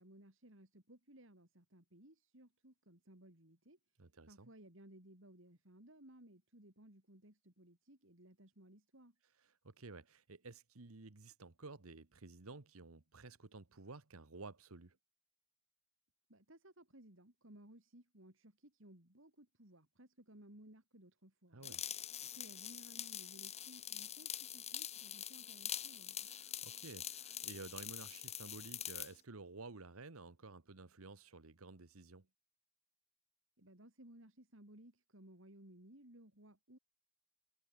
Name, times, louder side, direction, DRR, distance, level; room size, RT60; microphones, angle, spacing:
voice 1, 0.0-3.8 4.3-9.1 16.3-21.8 22.2-26.3 33.6-36.8, right 1 dB, 60° right, 4.2 m, -60 dB
voice 2, 4.0-4.5 9.4-15.0 21.5-21.8 26.2-32.3, right 3 dB, 75° right, 1.3 m, -53 dB
sound 1, 21.6-29.1, left 10 dB, 30° left, 1.6 m, -45 dB
head